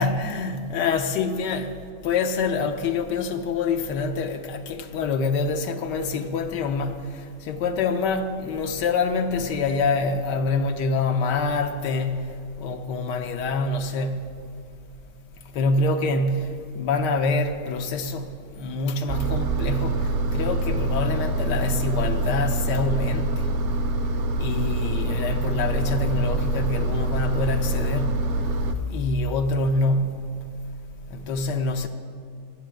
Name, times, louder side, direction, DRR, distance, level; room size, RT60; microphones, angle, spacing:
voice 1, 0.0-1.8 2.0-14.2 15.5-23.5 24.4-28.2 28.9-30.2 31.1-31.9, left 3 dB, 85° left, 1.3 m, -26 dB
Engine, 19.1-28.7, right 2 dB, 60° right, 0.7 m, -25 dB
10.5 x 7.7 x 8.8 m
omnidirectional pair, 1.8 m